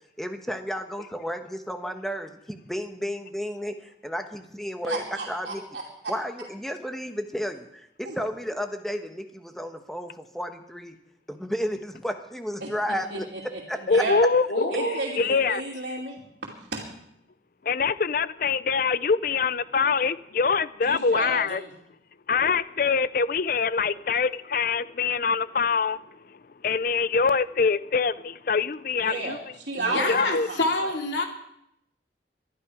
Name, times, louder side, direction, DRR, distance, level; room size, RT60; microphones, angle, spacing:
voice 1, 0.2-5.6 6.1-11.0 11.3-13.3 13.7-14.0, equal, ahead, 1.2 m, -32 dB
voice 2, 4.8-6.1 8.0-8.1 12.6-12.7 13.1-14.2 14.7-16.8 20.9-21.7 29.0-30.9, right 3 dB, 75° right, 2.8 m, -33 dB
voice 3, 13.9-14.5 15.2-15.6 17.6-21.6 22.3-26.0 26.3-29.4 29.9-30.5, left 5 dB, 50° left, 0.5 m, -24 dB
voice 4, 14.5-15.0 29.7-31.2, left 2 dB, 85° left, 2.7 m, -27 dB
21.5 x 12.0 x 4.9 m
head